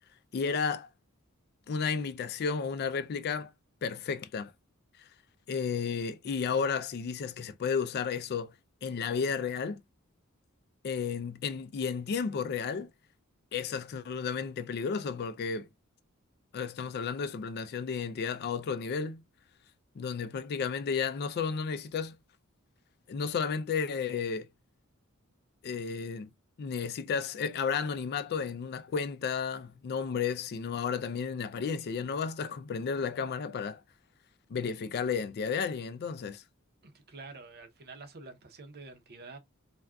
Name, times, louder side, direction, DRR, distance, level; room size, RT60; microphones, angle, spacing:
voice 1, 0.3-0.9 1.7-3.5 3.8-4.5 5.0-5.1 5.5-8.5 8.8-9.8 10.8-12.9 13.5-15.7 16.5-19.2 20.0-22.2 23.1-24.5 25.6-26.3 26.6-33.8 34.5-36.4, left 6 dB, 50° left, 0.3 m, -32 dB
voice 2, 36.8-39.4, right 3 dB, 50° right, 0.7 m, -48 dB
2.4 x 2.2 x 3.5 m
head